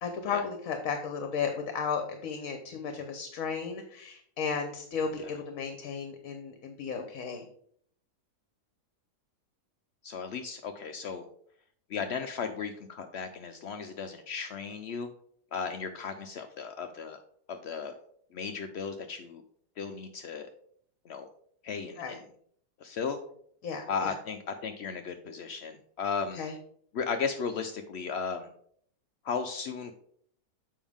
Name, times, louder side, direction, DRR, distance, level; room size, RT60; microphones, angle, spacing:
voice 1, 0.0-7.4 22.0-22.2 23.6-24.1 26.3-26.5, left 6 dB, 65° left, 6 dB, 1.1 m, -34 dB
voice 2, 10.0-11.3 11.9-15.1 15.5-17.2 17.5-17.9 18.3-19.4 19.8-20.5 21.0-21.2 21.6-22.2 22.8-23.2 23.9-26.4 26.9-28.5 29.2-29.9, left 5 dB, 90° left, 7 dB, 0.5 m, -35 dB
7.1 x 5.3 x 3.5 m, 0.63 s
omnidirectional pair, 1.7 m